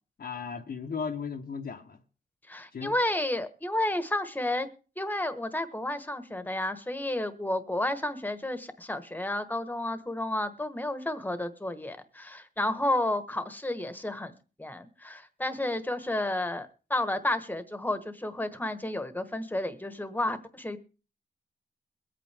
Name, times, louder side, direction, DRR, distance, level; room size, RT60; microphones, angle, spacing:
voice 1, 0.2-2.0 2.7-2.9, left 5 dB, 60° left, 1.0 m, -36 dB
voice 2, 2.5-4.7 5.0-14.3 14.6-20.8, left 1 dB, 10° left, 1.3 m, -31 dB
22.5 x 8.6 x 3.4 m
wide cardioid pair, 95°, 18 cm